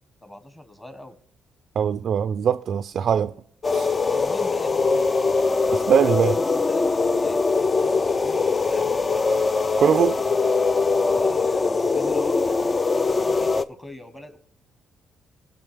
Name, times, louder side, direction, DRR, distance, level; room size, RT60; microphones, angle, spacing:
voice 1, 0.2-1.2 4.0-5.2 6.1-9.7 11.0-14.4, left 1 dB, 15° left, 1.4 m, -42 dB
voice 2, 1.8-3.3 3.7-4.0 5.7-6.4 9.8-10.2, right 8 dB, 60° right, 0.3 m, -21 dB
sound 1, 3.6-13.6, left 4 dB, 30° left, 0.4 m, -22 dB
16.5 x 5.9 x 3.5 m
cardioid pair, 90°, 0 cm